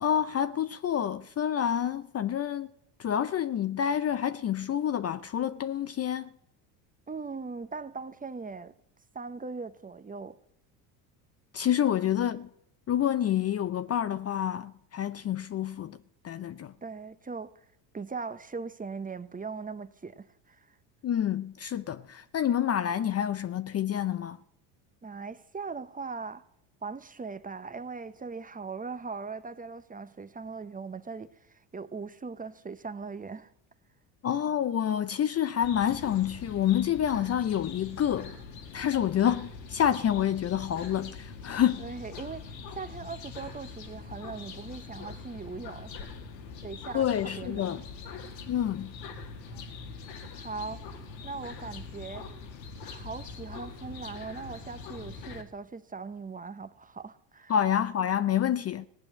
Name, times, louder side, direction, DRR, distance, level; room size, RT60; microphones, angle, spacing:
voice 1, 0.0-2.7 3.0-6.3 11.5-12.5 12.9-16.0 16.2-16.7 21.0-24.4 34.2-38.3 38.7-41.9 46.9-47.8 48.5-48.9 57.5-58.9, left 10 dB, 30° left, 0.6 m, -28 dB
voice 2, 7.1-8.7 9.1-10.4 11.7-11.9 16.8-17.5 17.9-20.7 25.0-26.5 26.8-33.5 39.0-39.1 41.8-46.1 46.6-47.8 50.3-52.3 52.8-57.5, right 4 dB, 15° right, 0.9 m, -40 dB
sound 1, 35.6-55.4, left 4 dB, 85° left, 2.1 m, -43 dB
17.5 x 8.8 x 7.4 m
hypercardioid pair, 75°, 48 cm